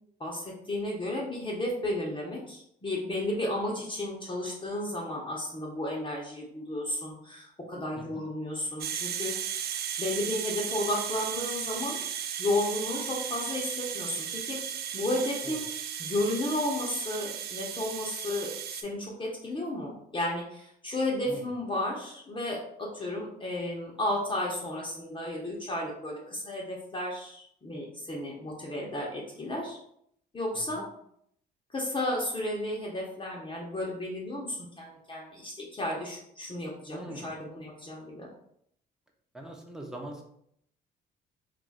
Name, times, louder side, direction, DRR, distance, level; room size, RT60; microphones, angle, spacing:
voice 1, 0.2-9.6 10.0-12.0 12.4-14.6 14.9-15.6 16.0-29.8 30.3-30.8 31.7-38.3, left 1 dB, 25° left, -3 dB, 0.8 m, -33 dB
sound 1, 8.8-18.8, right 8 dB, 55° right, 0.4 m, -35 dB
voice 2, 36.9-37.3 39.3-40.2, right 1 dB, 5° right, 1 dB, 0.8 m, -42 dB
2.7 x 2.4 x 4.0 m, 0.70 s
cardioid pair, 80°, 19 cm